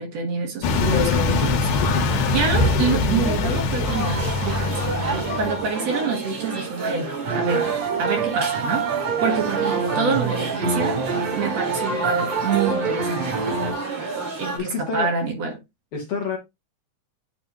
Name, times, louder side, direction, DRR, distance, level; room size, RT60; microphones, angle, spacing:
voice 1, 0.0-1.7 2.3-7.7 8.0-8.9 9.2-11.0 11.4-13.3 14.4-15.6, right 4 dB, 60° right, 2.4 m, -26 dB
sound 1, 0.6-5.7, left 3 dB, 80° left, 2.7 m, -22 dB
voice 2, 1.8-2.1 14.3-15.1 15.9-16.4, left 5 dB, 60° left, 1.8 m, -29 dB
sound 2, 3.8-14.6, right 3 dB, 40° right, 2.8 m, -29 dB
sound 3, 7.3-13.7, right 6 dB, 90° right, 3.1 m, -26 dB
8.8 x 3.9 x 2.9 m
omnidirectional pair, 3.6 m